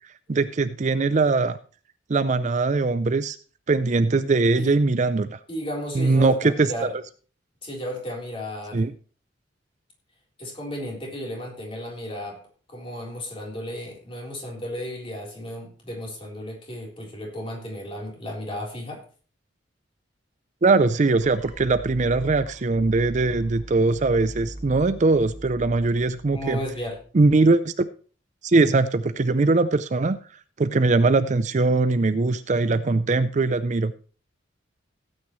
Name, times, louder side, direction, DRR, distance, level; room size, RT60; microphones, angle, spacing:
voice 1, 0.3-1.6 2.1-3.4 3.7-5.4 6.0-6.7 8.7-8.9 20.6-26.6 27.1-27.9 28.4-30.2 30.6-33.9, right 3 dB, 40° right, 12 dB, 0.5 m, -21 dB
voice 2, 5.5-6.9 7.6-8.8 10.4-12.4 12.7-19.0 26.3-27.0, equal, 30° left, -1 dB, 3.7 m, -34 dB
sound 1, 21.2-27.1, right 1 dB, 5° right, 2.4 m, -40 dB
16.5 x 9.0 x 3.1 m, 0.39 s
head